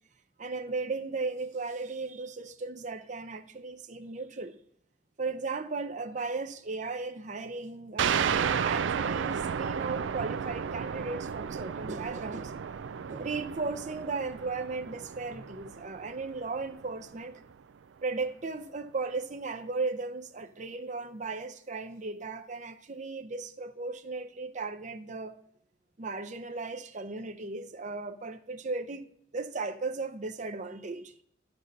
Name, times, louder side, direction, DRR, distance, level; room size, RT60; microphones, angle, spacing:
voice 1, 0.4-4.6 5.2-12.6 13.1-17.4 18.0-25.4 26.0-29.1 29.3-31.2, right 3 dB, 40° right, 0.6 m, -36 dB
sound 1, 8.0-17.2, right 7 dB, 80° right, 0.4 m, -33 dB
11.5 x 4.1 x 6.4 m
head